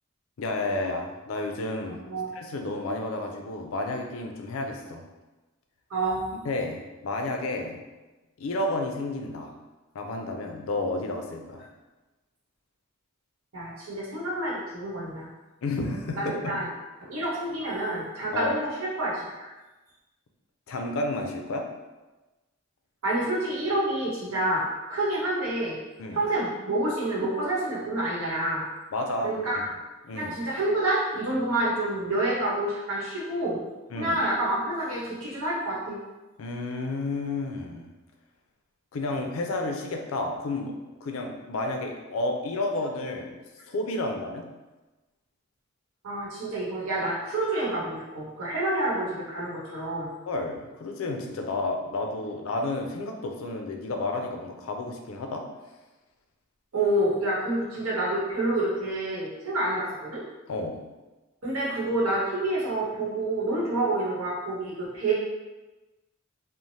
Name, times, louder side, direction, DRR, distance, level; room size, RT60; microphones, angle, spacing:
voice 1, 0.4-2.0 2.3-5.0 6.4-7.8 8.4-9.5 9.9-11.6 15.6-16.5 18.3-18.5 20.7-21.7 26.0-26.2 28.9-29.3 30.0-30.4 33.9-34.2 36.4-37.9 38.9-40.7 41.0-43.4 43.7-44.4 50.3-55.4 60.5-60.8, left 2 dB, 70° left, 3 dB, 0.4 m, -31 dB
voice 2, 1.9-2.3 5.9-6.2 13.5-15.3 16.2-16.6 17.0-18.7 19.0-19.5 23.0-25.8 26.1-28.6 29.2-29.7 30.1-33.6 34.0-36.0 46.0-50.1 56.7-60.2 61.4-65.1, right 1 dB, 85° right, -6 dB, 0.9 m, -28 dB
3.2 x 2.0 x 2.6 m, 1.1 s
head